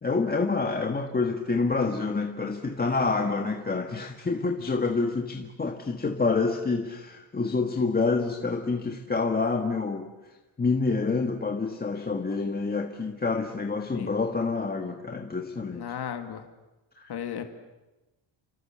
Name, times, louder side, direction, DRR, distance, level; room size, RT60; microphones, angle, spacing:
voice 1, 0.0-10.1 10.6-15.9 17.0-17.1, left 4 dB, 20° left, 3 dB, 1.5 m, -27 dB
voice 2, 15.7-16.4 17.1-17.4, left 9 dB, 50° left, 6 dB, 2.2 m, -35 dB
29.5 x 27.0 x 7.4 m, 1.1 s
cardioid pair, 155°, 48 cm